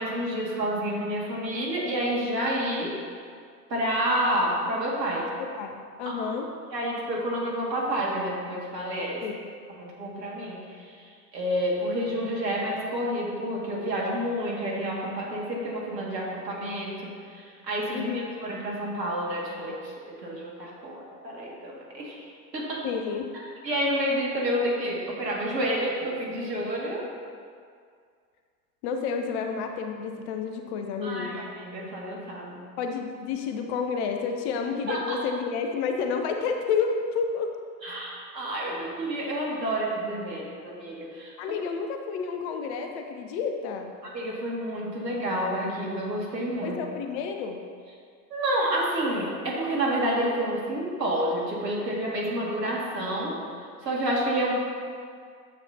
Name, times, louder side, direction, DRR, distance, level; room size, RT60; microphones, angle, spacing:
voice 1, 0.0-2.9 3.7-5.3 6.1-6.3 6.7-9.2 9.7-22.3 22.5-22.8 23.3-27.1 31.0-32.7 34.9-35.2 37.8-41.6 44.0-46.8 48.3-54.5, right 1 dB, 75° right, -3 dB, 2.1 m, -29 dB
voice 2, 5.4-6.5 9.2-9.3 17.9-18.5 22.8-23.2 28.8-31.4 32.8-37.5 41.4-43.9 46.6-47.6, left 5 dB, 40° left, 4 dB, 0.7 m, -30 dB
9.7 x 7.3 x 2.7 m, 2.1 s
figure-of-eight pair, 85°, 50 cm